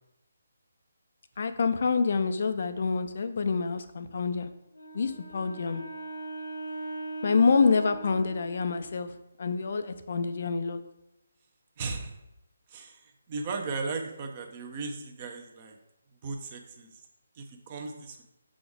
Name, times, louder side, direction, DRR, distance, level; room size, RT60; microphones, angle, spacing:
voice 1, 1.4-4.5 4.9-5.8 7.2-9.1 9.4-10.8, left 4 dB, 50° left, 10 dB, 0.5 m, -27 dB
Wind instrument woodwind instrument, 4.7-8.9, right 3 dB, 80° left, 1.2 m, -40 dB
voice 2, 11.8-12.2 12.7-15.8 16.2-17.0 17.3-18.2, right 4 dB, 30° right, 4 dB, 0.9 m, -36 dB
7.0 x 5.0 x 3.6 m, 0.91 s
figure-of-eight pair, 145°, 0 cm